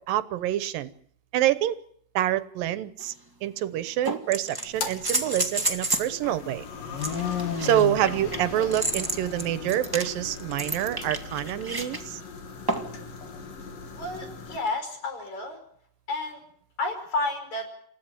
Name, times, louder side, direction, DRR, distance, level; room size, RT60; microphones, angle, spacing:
voice 1, 0.1-0.9 1.3-1.8 2.1-3.1 3.4-6.6 7.6-12.2, right 12 dB, 85° right, 13 dB, 2.7 m, -26 dB
sound 1, 3.0-3.1 4.0-6.1 7.0-12.0 12.7-13.0 14.7-14.8, right 2 dB, 15° right, 0.8 m, -30 dB
sound 2, 4.6-14.6, left 6 dB, 85° left, 4.5 m, -36 dB
voice 2, 13.9-15.6 16.1-16.4 16.8-17.6, left 2 dB, 55° left, 6 dB, 6.5 m, -31 dB
29.0 x 15.0 x 7.5 m, 0.64 s
omnidirectional pair, 3.9 m